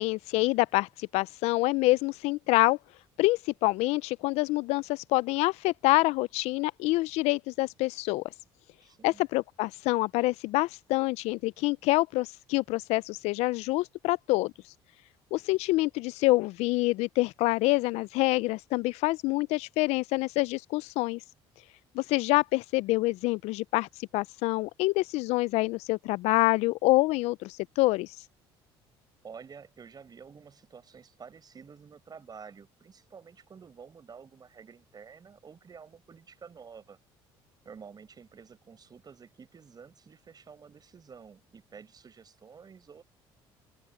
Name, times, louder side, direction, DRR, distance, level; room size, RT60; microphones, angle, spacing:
voice 1, 0.0-2.8 3.2-8.2 9.0-14.5 15.3-21.2 21.9-23.9 24.1-28.2, left 20 dB, 75° left, 0.4 m, -26 dB
voice 2, 8.8-9.2 29.2-37.0 37.6-43.0, right 6 dB, 35° right, 4.9 m, -50 dB
open air
supercardioid pair, 80°, 11 cm